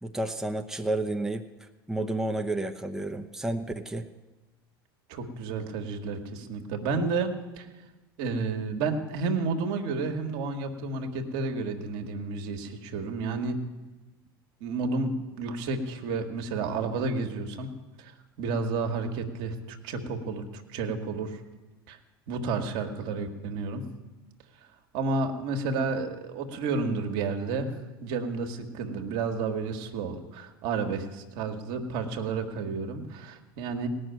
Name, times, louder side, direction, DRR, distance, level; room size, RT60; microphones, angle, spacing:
voice 1, 0.0-1.4 1.9-4.1, right 2 dB, 5° right, 4 dB, 0.8 m, -31 dB
voice 2, 5.1-7.7 8.2-13.6 14.6-17.7 18.0-18.1 18.4-21.4 21.9-22.0 22.3-23.8 24.9-27.7 28.0-33.9, right 4 dB, 60° right, 4 dB, 1.6 m, -31 dB
18.0 x 6.3 x 9.1 m, 1.1 s
hypercardioid pair, 80°, 12 cm